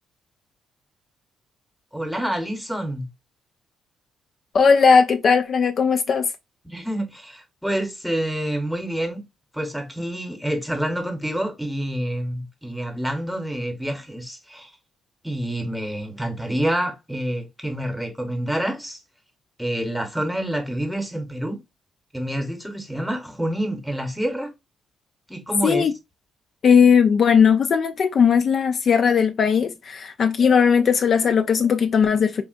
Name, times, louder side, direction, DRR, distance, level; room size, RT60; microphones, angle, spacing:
voice 1, 1.9-3.1 6.6-9.2 9.5-14.7 15.2-19.0 19.6-21.6 22.1-24.5 25.3-25.9, right 1 dB, ahead, 1.0 m, -27 dB
voice 2, 4.5-6.3 25.6-25.9 26.6-32.4, left 6 dB, 55° left, 0.3 m, -18 dB
3.7 x 2.4 x 2.4 m
cardioid pair, 90°, 0 cm